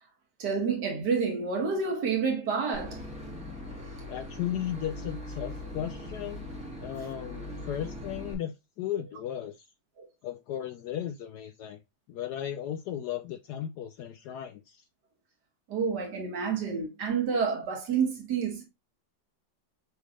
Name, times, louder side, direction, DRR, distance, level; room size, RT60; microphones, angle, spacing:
voice 1, 0.4-3.0 10.0-10.1 15.7-18.6, right 5 dB, 60° right, 1.9 m, -29 dB
Boat Water vehicle / Engine, 2.7-8.3, left 1 dB, 5° right, 1.2 m, -40 dB
voice 2, 4.1-6.5 6.8-9.7 10.2-11.8 12.1-14.8, left 10 dB, 70° left, 1.0 m, -35 dB
6.3 x 3.2 x 2.3 m
omnidirectional pair, 2.1 m